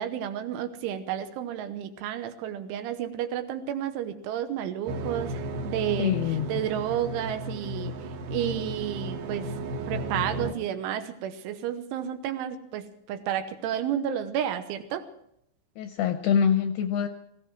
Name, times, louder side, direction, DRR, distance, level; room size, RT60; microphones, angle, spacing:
voice 1, 0.0-6.1 6.5-7.9 8.3-9.5 9.9-15.1, right 10 dB, 80° right, 9 dB, 3.5 m, -31 dB
sound 1, 4.9-10.5, right 1 dB, 65° right, 2.9 m, -34 dB
voice 2, 6.0-6.6 15.8-17.1, left 8 dB, 80° left, 7 dB, 2.4 m, -25 dB
19.0 x 16.0 x 4.7 m, 0.74 s
omnidirectional pair, 5.6 m